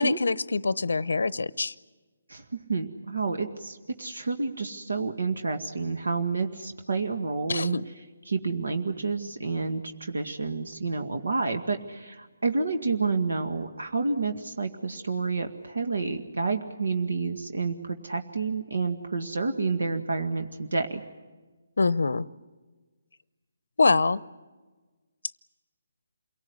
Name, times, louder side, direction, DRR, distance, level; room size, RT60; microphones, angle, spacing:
voice 1, 0.0-1.7 7.5-7.9 21.8-22.3 23.8-24.2, left 3 dB, 85° left, 19 dB, 0.7 m, -24 dB
voice 2, 2.3-7.8 8.3-21.0, right 4 dB, 85° right, 5 dB, 1.9 m, -29 dB
28.0 x 18.5 x 9.6 m, 1.3 s
hypercardioid pair, 160°, 0 cm